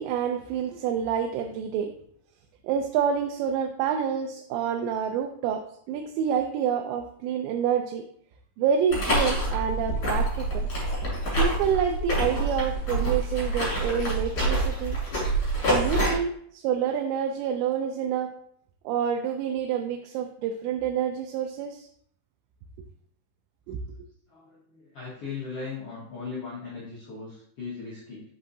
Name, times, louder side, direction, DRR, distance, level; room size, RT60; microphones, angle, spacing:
voice 1, 0.0-2.0 2.6-5.6 5.9-8.0 8.6-10.7 11.4-15.0 15.7-18.3 18.9-21.9 23.7-23.8, right 8 dB, 90° right, 4 dB, 2.8 m, -28 dB
sound 1, 8.9-16.1, right 1 dB, 35° left, 3.3 m, -26 dB
voice 2, 24.3-28.2, left 5 dB, 70° left, -6 dB, 1.4 m, -38 dB
6.6 x 5.9 x 2.7 m, 0.64 s
omnidirectional pair, 5.0 m